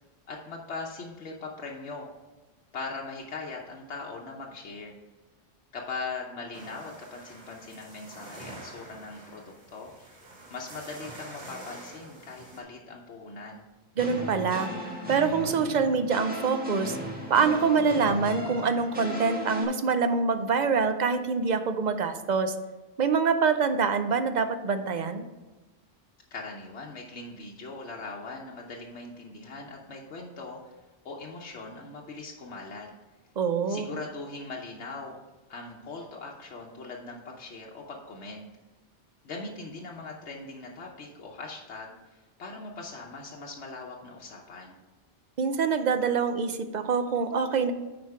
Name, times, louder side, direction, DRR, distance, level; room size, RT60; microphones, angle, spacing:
voice 1, 0.3-2.1 2.7-4.9 5.7-10.1 10.5-13.7 26.3-30.8 31.0-32.9 33.7-35.2 35.5-38.4 39.2-44.8, left 3 dB, 80° left, -2 dB, 1.2 m, -40 dB
sound 1, 6.5-12.6, right 2 dB, 80° right, 2.0 m, -47 dB
sound 2, 14.0-19.6, equal, 10° right, 1.4 m, -36 dB
voice 2, 14.0-14.7 15.1-17.0 17.3-22.5 23.0-25.2 33.4-33.9 45.4-47.7, right 5 dB, 50° right, 9 dB, 0.6 m, -25 dB
10.0 x 4.3 x 4.7 m, 1.2 s
omnidirectional pair, 1.1 m